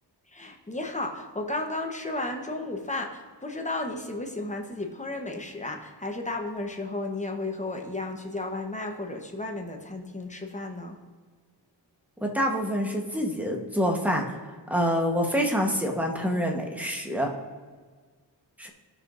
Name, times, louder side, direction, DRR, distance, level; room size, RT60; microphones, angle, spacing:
voice 1, 0.3-11.0, left 2 dB, 15° left, 2 dB, 1.1 m, -33 dB
voice 2, 12.2-14.2 14.7-17.3 18.6-18.7, equal, 5° right, 1 dB, 1.2 m, -26 dB
16.0 x 5.9 x 2.6 m, 1.5 s
wide cardioid pair, 115°, 43 cm